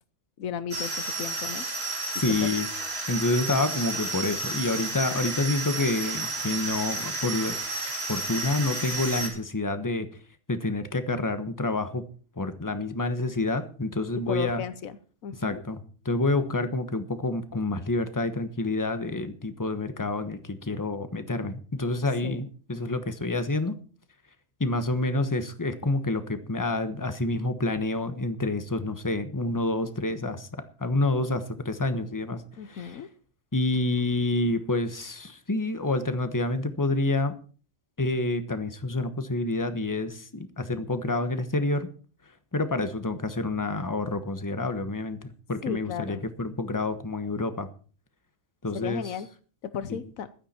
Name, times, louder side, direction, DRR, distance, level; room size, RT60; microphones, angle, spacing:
voice 1, 0.4-1.6 2.3-2.5 14.3-15.6 22.2-22.4 32.6-33.1 45.6-46.2 48.7-49.3 49.7-50.3, left 8 dB, 85° left, 13 dB, 1.3 m, -35 dB
sound 1, 0.7-9.3, right 2 dB, 50° right, 3.1 m, -32 dB
voice 2, 2.2-2.7 3.1-7.6 8.1-10.1 10.5-12.0 12.4-14.6 15.4-23.7 24.6-33.0 33.5-37.3 38.0-41.9 42.5-45.2 45.5-47.7 48.6-49.0 49.9-50.0, left 2 dB, 15° left, 10 dB, 1.1 m, -28 dB
15.5 x 12.5 x 4.3 m, 0.40 s
omnidirectional pair, 1.4 m